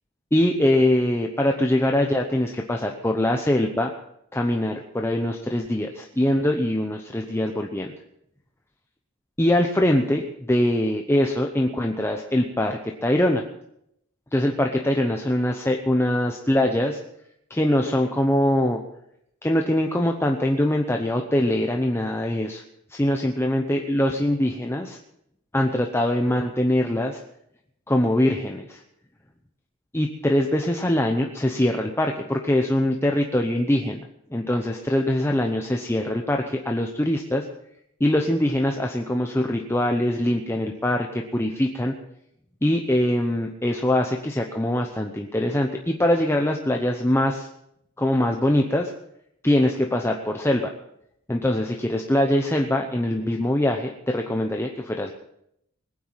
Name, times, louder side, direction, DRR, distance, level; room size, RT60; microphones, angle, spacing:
voice 1, 0.3-3.9 4.3-7.9 9.4-13.4 14.3-17.0 17.5-18.8 19.4-22.6 22.9-25.0 25.5-27.2 27.9-28.8 29.9-37.4 38.0-41.9 42.6-47.5 48.0-48.9 49.4-50.7 51.3-55.1, left 1 dB, 10° left, 3 dB, 0.8 m, -23 dB
21.0 x 9.2 x 5.8 m, 0.76 s
head